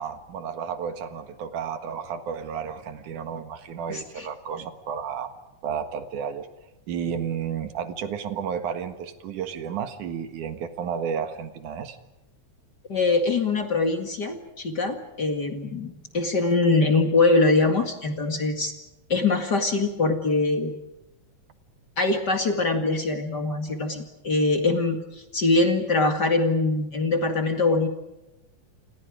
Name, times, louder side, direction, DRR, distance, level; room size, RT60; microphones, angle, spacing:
voice 1, 0.0-5.3 5.6-6.5 6.9-12.0, right 7 dB, 75° right, 8 dB, 3.1 m, -32 dB
voice 2, 3.9-4.3 12.9-18.7 19.1-20.7 22.0-27.9, left 3 dB, 35° left, 5 dB, 2.3 m, -23 dB
28.5 x 28.0 x 5.0 m, 0.97 s
omnidirectional pair, 3.6 m